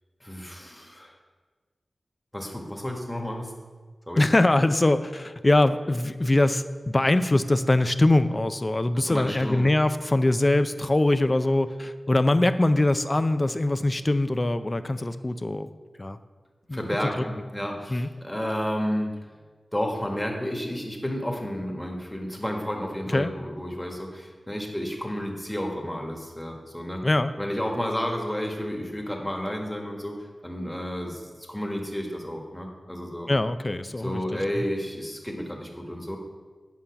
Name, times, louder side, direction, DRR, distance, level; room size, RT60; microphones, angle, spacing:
voice 1, 0.2-1.1 2.3-3.5 4.1-4.2 8.9-9.7 16.7-19.1 19.7-27.0 27.4-30.1 30.4-33.3 34.0-36.2, equal, 10° left, 0 dB, 1.6 m, -31 dB
voice 2, 4.2-15.7 16.0-16.2 16.7-16.8 17.2-17.3 17.9-18.1 23.1-23.3 27.0-27.3 33.3-34.6, left 2 dB, 30° left, 12 dB, 0.5 m, -23 dB
9.1 x 5.6 x 5.9 m, 1.4 s
wide cardioid pair, 75°, 0 cm